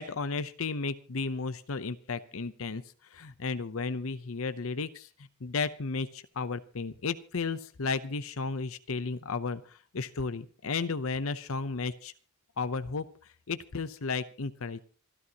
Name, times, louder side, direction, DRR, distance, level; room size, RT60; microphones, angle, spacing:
voice 1, 0.0-2.8 3.1-5.1 5.4-12.1 12.6-13.1 13.5-14.8, left 4 dB, 70° left, 12 dB, 0.7 m, -33 dB
26.5 x 12.5 x 2.9 m, 0.37 s
head